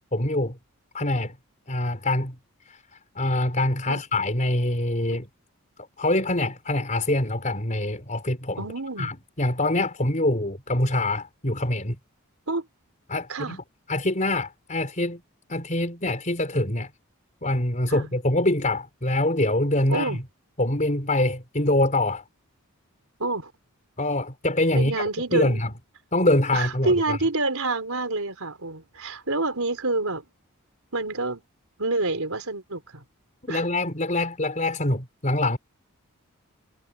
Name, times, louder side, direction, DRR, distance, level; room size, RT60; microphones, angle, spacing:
voice 1, 0.1-0.6 0.9-1.4 1.7-2.3 2.7-5.3 6.0-8.6 9.0-12.0 13.1-15.2 15.5-16.9 17.4-20.2 20.6-22.2 24.0-25.0 25.3-25.7 26.1-27.2 33.4-35.6, left 1 dB, 35° left, 4.8 m, -25 dB
voice 2, 8.6-9.1 12.5-12.7 13.3-13.6 17.9-18.1 19.9-20.2 23.2-23.5 24.7-25.6 26.5-30.2 30.9-31.4 31.8-33.0 33.5-33.6, right 2 dB, 75° right, 4.3 m, -27 dB
head